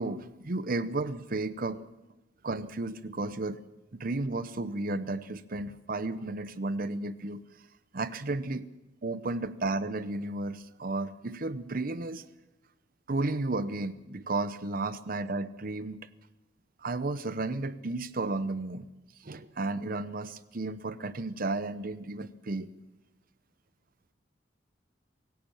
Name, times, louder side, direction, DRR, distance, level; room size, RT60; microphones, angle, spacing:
voice 1, 0.0-1.8 2.4-3.6 3.9-7.4 7.9-8.7 9.0-12.2 13.1-16.1 16.8-18.9 19.2-22.7, right 2 dB, 50° right, 15 dB, 0.8 m, -33 dB
25.0 x 16.0 x 7.1 m, 1.0 s
head